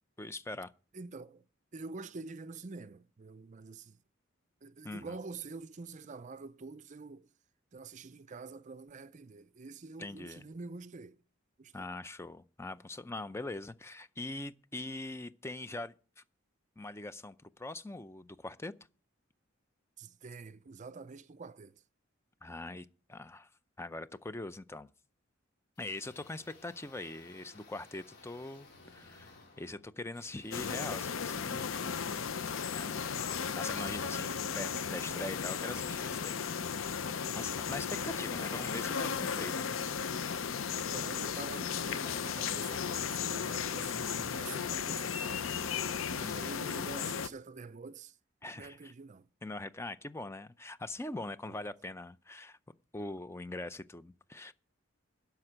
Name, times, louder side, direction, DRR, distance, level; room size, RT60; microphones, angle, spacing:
voice 1, 0.2-0.7 4.8-5.1 10.0-10.4 11.7-16.2 16.8-18.7 22.4-23.5 23.8-24.9 25.8-31.7 32.6-33.2 33.5-36.4 37.3-39.7 46.2-46.6 48.4-48.9 49.4-52.6 52.9-54.5, left 2 dB, 15° left, 0.5 m, -42 dB
voice 2, 0.9-1.5 1.7-4.0 4.6-7.3 7.7-11.2 11.6-11.9 20.0-21.8 38.0-38.5 40.7-45.7 46.1-48.2 48.5-49.3 51.4-51.6, right 4 dB, 35° right, 0.5 m, -47 dB
sound 1, 25.8-38.0, left 3 dB, 50° left, 4.0 m, -59 dB
sound 2, 30.5-47.3, left 6 dB, 75° left, 0.6 m, -35 dB
12.5 x 5.9 x 8.8 m
head